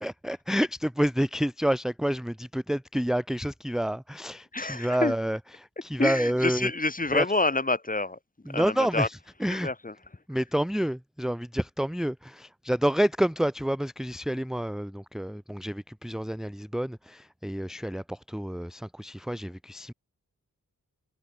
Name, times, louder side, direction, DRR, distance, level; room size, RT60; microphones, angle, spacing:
voice 1, 0.0-6.7 7.1-7.3 8.5-9.7 10.3-19.9, equal, ahead, 0.9 m, -29 dB
voice 2, 4.5-5.1 6.0-8.2 8.5-9.1 9.5-9.9, left 2 dB, 25° left, 2.6 m, -27 dB
wide cardioid pair, 80°, 33 cm